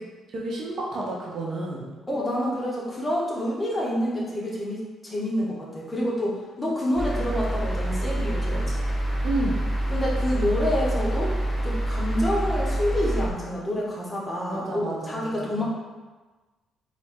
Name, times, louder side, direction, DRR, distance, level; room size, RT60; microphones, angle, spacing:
voice 1, 0.3-1.9 9.2-9.6 14.5-15.6, right 2 dB, 60° right, -3 dB, 0.8 m, -31 dB
voice 2, 2.1-8.8 9.9-11.3 11.6-15.6, equal, 20° left, -4 dB, 1.1 m, -28 dB
sound 1, 7.0-13.3, right 1 dB, 5° right, 1.1 m, -26 dB
4.1 x 2.6 x 3.6 m, 1.2 s
cardioid pair, 90°, 0 cm